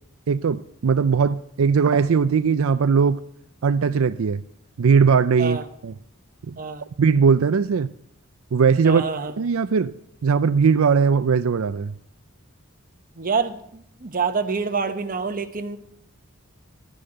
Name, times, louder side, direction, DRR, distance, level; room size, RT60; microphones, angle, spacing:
voice 1, 0.3-3.2 3.6-4.4 4.8-5.6 5.8-5.9 6.5-6.6 7.0-7.9 8.5-9.0 9.4-9.9 10.2-11.9, right 5 dB, 75° right, 0.4 m, -19 dB
voice 2, 8.8-9.4 13.1-15.8, right 5 dB, 40° right, 1.1 m, -26 dB
12.5 x 10.0 x 7.8 m
head